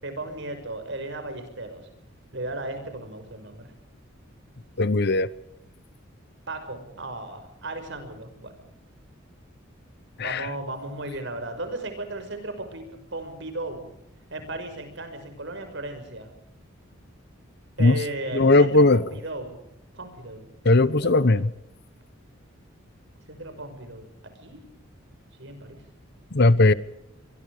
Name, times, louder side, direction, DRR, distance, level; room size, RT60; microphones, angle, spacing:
voice 1, 0.0-1.8 2.3-3.7 6.5-8.5 10.2-13.9 14.3-16.3 17.8-19.6 19.9-20.5 21.0-21.4 23.3-24.1 24.4-24.6 25.4-25.8, right 2 dB, 60° right, 6.2 m, -35 dB
voice 2, 4.8-5.3 10.2-10.5 17.8-18.0 18.3-19.0 20.6-21.5 26.3-26.7, left 2 dB, 55° left, 1.0 m, -18 dB
25.0 x 23.5 x 5.1 m
head